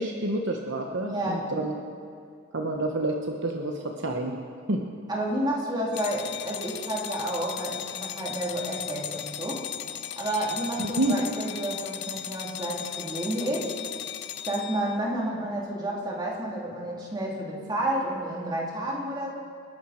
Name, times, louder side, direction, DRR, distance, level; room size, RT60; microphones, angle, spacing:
voice 1, 0.0-1.7 2.5-4.3 4.7-4.8 10.8-11.1, right 2 dB, 60° right, 2 dB, 1.1 m, -28 dB
voice 2, 1.0-1.5 5.1-9.7 10.2-13.7 14.4-19.3, right 1 dB, 20° right, -4 dB, 3.4 m, -30 dB
sound 1, 5.9-15.0, left 10 dB, 55° left, 0.7 m, -37 dB
28.0 x 11.5 x 4.4 m, 2.3 s
head